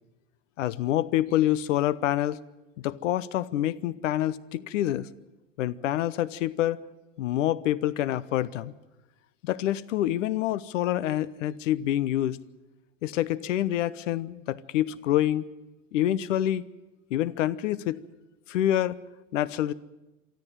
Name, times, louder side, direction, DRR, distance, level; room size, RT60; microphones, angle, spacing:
voice 1, 0.6-2.4 2.8-5.1 5.6-6.8 7.2-8.7 9.4-12.4 13.0-15.5 15.9-16.6 17.1-18.0 18.5-19.0 19.3-19.7, left 13 dB, 80° left, 18 dB, 1.0 m, -27 dB
24.0 x 13.5 x 9.2 m, 1.0 s
hypercardioid pair, 100°, 38 cm